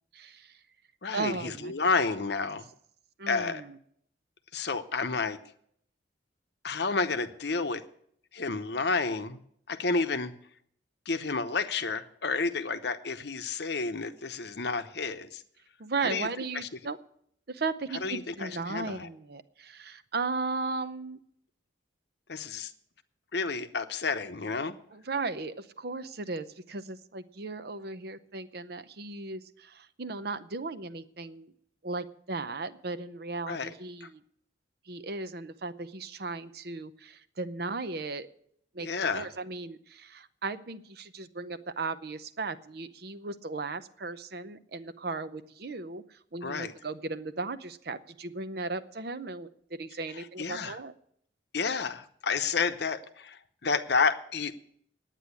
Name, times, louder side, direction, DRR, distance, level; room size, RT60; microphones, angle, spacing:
voice 1, 0.1-0.6 1.1-1.7 3.2-3.8 15.8-17.0 17.5-21.2 24.9-31.5 31.8-34.2 34.9-38.3 38.7-49.5 49.8-50.9, right 3 dB, 55° right, 12 dB, 0.7 m, -36 dB
voice 2, 1.0-2.7 3.3-3.6 4.5-5.4 6.6-7.8 8.3-9.4 9.7-10.3 11.1-15.4 16.0-16.3 16.5-16.7 18.0-19.1 22.3-22.7 23.3-24.7 33.5-33.7 34.0-34.1 38.8-39.3 46.4-46.7 50.2-50.8 51.5-54.5, left 4 dB, 60° left, 9 dB, 0.8 m, -30 dB
9.9 x 9.1 x 8.3 m, 0.67 s
head